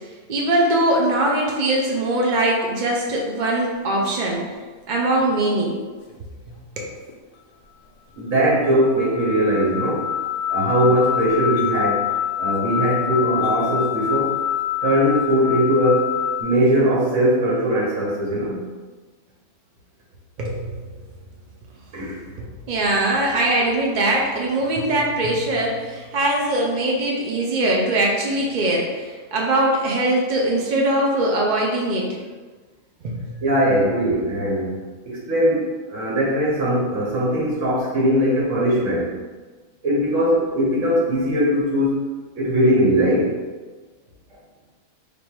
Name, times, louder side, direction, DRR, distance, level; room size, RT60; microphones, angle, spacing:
voice 1, 0.3-4.5 4.9-5.8 6.5-6.9 20.4-20.9 22.3-32.2 33.0-33.4, right 1 dB, 80° right, -2 dB, 0.4 m, -21 dB
sound 1, 3.8-4.1 5.1-5.3 6.1-6.2 7.1-7.2 8.1-8.2 8.4-16.4, left 10 dB, 75° left, 1.1 m, -26 dB
voice 2, 8.2-10.1 10.5-12.1 12.4-14.4 14.8-16.1 16.4-18.6 21.9-22.2 33.4-34.8 35.0-39.1 39.8-42.0 42.3-43.3, equal, 55° right, -5 dB, 1.1 m, -20 dB
3.4 x 2.6 x 4.5 m, 1.3 s
omnidirectional pair, 1.7 m